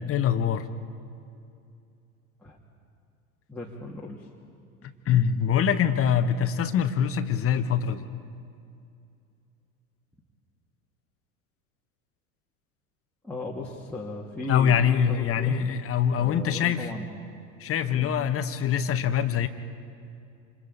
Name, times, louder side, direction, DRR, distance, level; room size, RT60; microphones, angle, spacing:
voice 1, 0.1-0.7 4.8-8.1 14.5-16.9 17.6-19.5, left 8 dB, 30° left, 10 dB, 1.4 m, -24 dB
voice 2, 3.5-4.3 13.2-15.6 16.2-17.3 17.9-18.1, left 2 dB, 5° left, -6 dB, 2.5 m, -37 dB
28.0 x 27.5 x 4.2 m, 2.5 s
figure-of-eight pair, 75°, 43 cm